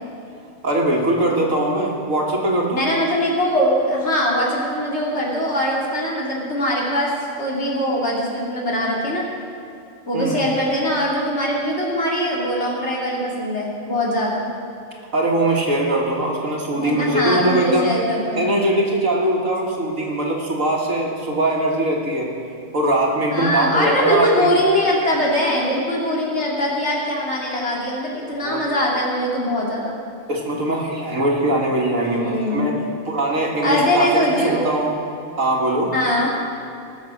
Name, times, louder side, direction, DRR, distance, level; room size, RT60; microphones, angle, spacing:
voice 1, 0.6-2.8 10.1-10.4 15.1-17.9 18.3-22.3 22.7-24.5 28.4-28.6 30.3-35.0 35.4-36.0, right 1 dB, 75° right, 0 dB, 2.3 m, -21 dB
voice 2, 2.8-7.1 7.4-9.2 10.0-14.5 16.8-18.6 23.3-30.0 32.0-32.7 33.6-34.7 35.9-36.3, equal, 55° left, -3 dB, 3.0 m, -21 dB
19.5 x 7.3 x 6.2 m, 2.6 s
omnidirectional pair, 1.4 m